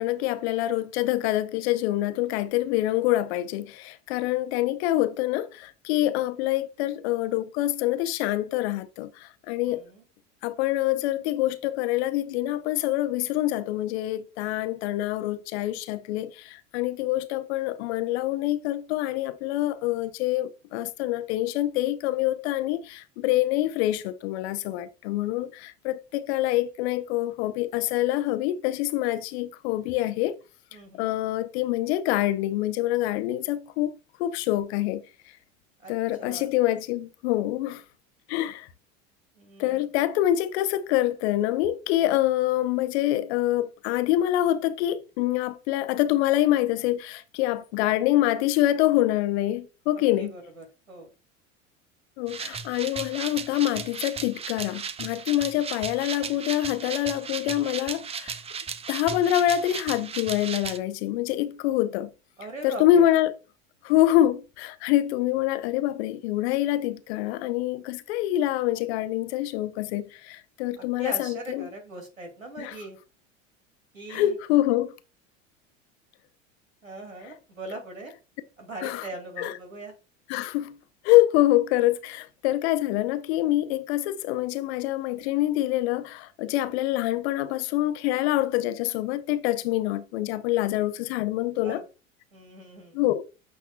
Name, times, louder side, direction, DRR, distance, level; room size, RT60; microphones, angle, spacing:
voice 1, 0.0-9.8 10.4-30.4 30.9-33.9 34.2-35.0 35.9-37.8 38.3-38.7 39.6-50.3 52.2-58.4 58.9-62.1 62.6-63.4 63.8-71.7 72.6-72.7 74.1-74.9 78.8-79.0 79.4-79.5 80.3-80.8 81.0-91.8 92.9-93.2, left 14 dB, 55° left, 0.8 m, -25 dB
voice 2, 9.7-10.0 30.7-31.1 35.8-35.9 36.2-36.5 39.4-39.9 50.0-51.1 62.4-63.1 70.8-73.0 73.9-74.4 76.8-78.1 78.6-80.0 90.6-90.7 91.6-91.8 92.3-93.0, right 2 dB, 90° right, 2.3 m, -40 dB
sound 1, 52.3-60.8, right 6 dB, 15° right, 0.5 m, -36 dB
8.5 x 5.7 x 2.2 m
figure-of-eight pair, 75°, 39 cm